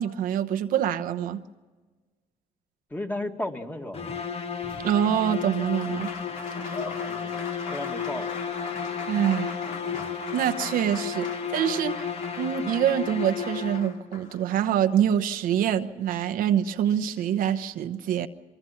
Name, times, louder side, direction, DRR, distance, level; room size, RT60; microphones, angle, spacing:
voice 1, 0.0-1.4 4.8-6.1 9.1-9.5 10.3-12.1 12.4-18.3, right 10 dB, 80° right, 7 dB, 1.0 m, -25 dB
voice 2, 2.9-4.0 7.1-7.4 7.7-8.3, left 1 dB, 15° left, 4 dB, 2.0 m, -33 dB
sound 1, 3.9-14.2, left 7 dB, 45° left, 1.5 m, -33 dB
Applause, 4.6-14.9 16.3-16.4 16.6-17.6, left 4 dB, 75° left, 3.0 m, -41 dB
24.0 x 23.5 x 5.8 m, 1.3 s
cardioid pair, 90°, 14 cm